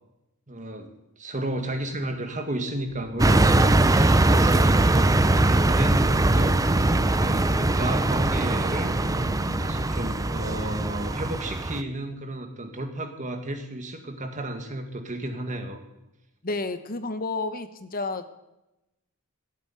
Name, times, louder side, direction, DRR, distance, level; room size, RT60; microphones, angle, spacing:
voice 1, 0.5-0.9 1.2-9.3 9.6-15.8, right 1 dB, 35° right, 5 dB, 2.0 m, -33 dB
sound 1, 2.9-11.2, equal, 65° right, 4.2 m, -39 dB
sound 2, 3.2-11.8, right 2 dB, 15° right, 0.5 m, -21 dB
voice 2, 16.4-18.3, left 3 dB, 40° left, 11 dB, 1.0 m, -30 dB
16.5 x 8.2 x 9.2 m, 0.94 s
head